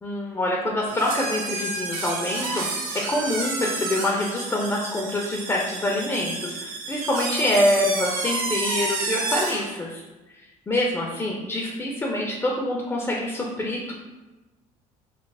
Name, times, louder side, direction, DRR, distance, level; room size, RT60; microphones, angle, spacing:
voice 1, 0.0-10.0 10.7-13.9, left 1 dB, 15° left, -2 dB, 0.5 m, -26 dB
sound 1, 0.9-9.7, right 3 dB, 85° right, 0.6 m, -30 dB
3.2 x 2.0 x 3.3 m, 1.1 s
hypercardioid pair, 70°, 18 cm